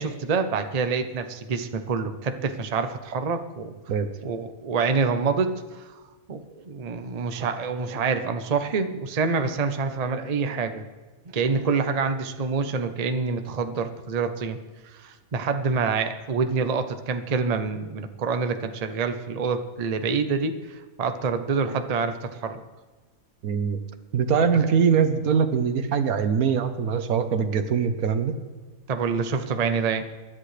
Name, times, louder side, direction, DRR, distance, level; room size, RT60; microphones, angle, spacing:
voice 1, 0.0-3.7 4.2-5.9 6.3-10.8 11.3-14.6 15.0-22.6 28.9-30.0, right 5 dB, 35° right, 7 dB, 0.7 m, -26 dB
voice 2, 23.4-23.8 24.1-28.3, right 6 dB, 80° right, 9 dB, 1.4 m, -22 dB
24.0 x 11.0 x 3.3 m, 1.3 s
omnidirectional pair, 1.5 m